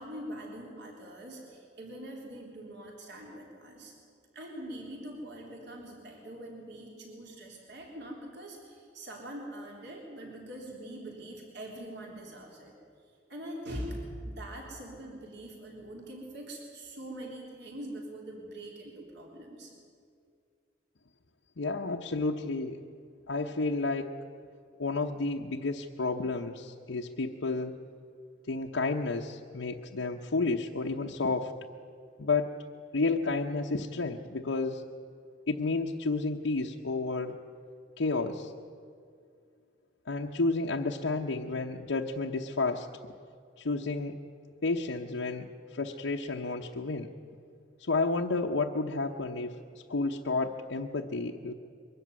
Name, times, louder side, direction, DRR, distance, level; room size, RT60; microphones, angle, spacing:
voice 1, 0.0-3.9 4.3-12.7 13.3-19.7, right 1 dB, 65° right, 0 dB, 3.6 m, -43 dB
voice 2, 21.6-22.8 23.3-24.1 24.8-27.8 28.5-31.5 32.2-32.6 32.9-34.8 35.5-37.4 38.0-38.5 40.1-42.9 43.6-44.2 44.6-47.1 47.8-51.5, left 3 dB, 85° left, 0 dB, 0.9 m, -31 dB
22.5 x 13.5 x 9.5 m, 2.3 s
head